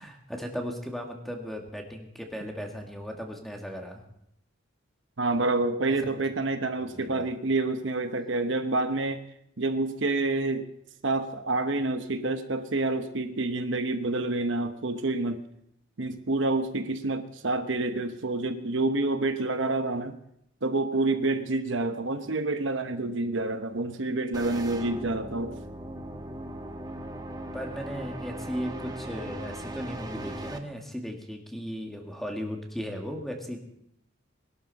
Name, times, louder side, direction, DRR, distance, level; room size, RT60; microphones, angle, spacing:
voice 1, 0.0-4.0 5.9-6.0 6.8-7.3 27.5-33.6, equal, ahead, 2 dB, 1.9 m, -36 dB
voice 2, 5.2-9.2 9.6-10.7 11.0-15.4 16.0-20.2 20.6-25.5, right 2 dB, 65° right, 8 dB, 1.0 m, -28 dB
sound 1, 24.3-30.6, right 1 dB, 20° right, 1.1 m, -38 dB
21.5 x 12.0 x 4.1 m, 0.75 s
head